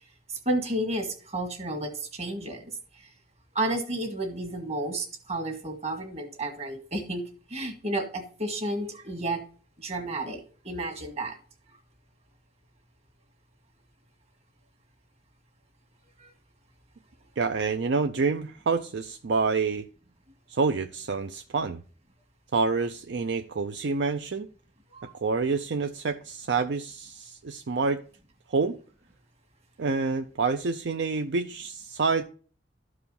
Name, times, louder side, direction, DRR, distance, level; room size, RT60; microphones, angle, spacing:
voice 1, 0.3-2.7 3.6-7.2 7.5-9.4 9.8-11.4 16.2-16.3 24.9-25.1, right 1 dB, 35° right, 1.7 m, -31 dB
voice 2, 17.4-19.9 20.5-21.8 22.5-24.5 25.1-28.0 28.5-28.8 29.8-32.2, right 4 dB, 65° right, 0.5 m, -27 dB
12.5 x 4.9 x 5.3 m
head